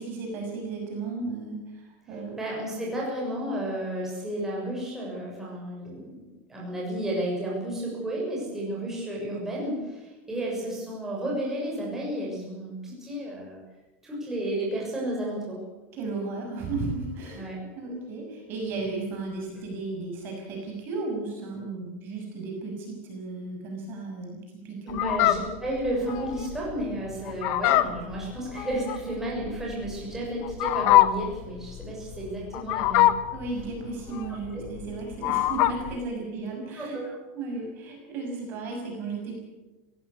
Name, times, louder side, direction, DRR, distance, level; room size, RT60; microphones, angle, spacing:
voice 1, 0.0-2.4 15.9-17.4 17.7-24.4 24.6-25.0 33.3-37.0 37.4-39.4, right 3 dB, 35° right, 1 dB, 6.3 m, -34 dB
voice 2, 2.4-13.6 14.0-15.6 17.4-17.6 24.8-33.1 34.5-34.6 36.7-37.0, right 1 dB, 5° right, -4 dB, 6.9 m, -32 dB
Fowl, 24.9-36.0, left 14 dB, 40° left, 1.1 m, -25 dB
22.0 x 16.5 x 8.7 m, 1.1 s
supercardioid pair, 175°, 7 cm